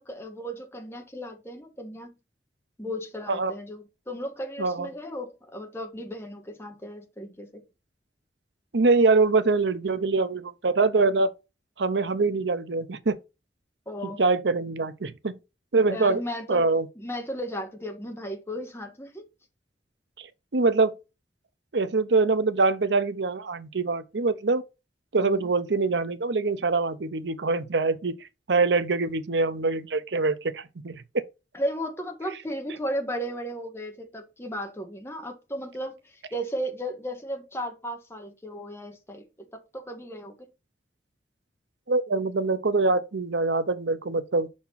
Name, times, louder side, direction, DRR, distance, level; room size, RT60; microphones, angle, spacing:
voice 1, 0.0-2.2 2.8-7.6 13.9-14.2 15.9-16.6 16.9-19.3 25.2-25.5 31.5-40.5, equal, 15° left, 1.5 m, -35 dB
voice 2, 4.6-4.9 8.7-11.3 11.8-13.2 14.0-15.4 15.7-16.2 16.5-16.9 20.2-20.3 20.5-20.9 21.7-24.6 25.1-28.1 28.5-31.2 41.9-44.5, right 3 dB, 85° right, 0.8 m, -24 dB
5.7 x 4.4 x 5.8 m
head